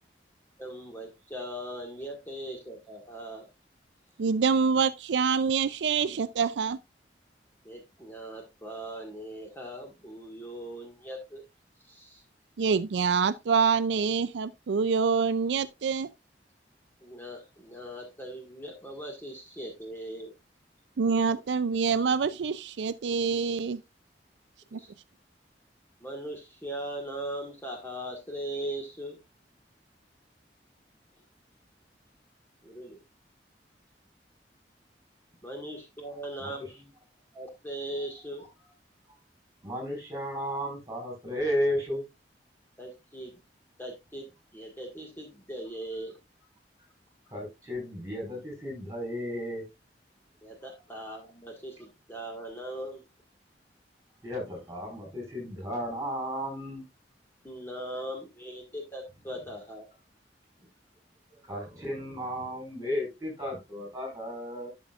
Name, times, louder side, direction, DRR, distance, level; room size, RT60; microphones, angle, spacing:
voice 1, 0.6-3.5 7.6-11.4 11.8-12.2 17.0-20.3 24.7-24.9 26.0-29.2 32.6-33.0 35.4-36.9 37.3-38.5 42.8-43.4 43.8-46.2 50.4-53.0 57.4-59.9, right 1 dB, 10° left, 1.7 m, -39 dB
voice 2, 4.2-6.8 12.6-16.1 21.0-23.8 24.7-24.8, right 5 dB, 80° right, 0.4 m, -26 dB
voice 3, 39.6-42.0 47.3-49.6 54.2-56.8 61.3-64.7, equal, 20° right, 5.2 m, -34 dB
12.5 x 6.1 x 2.4 m
head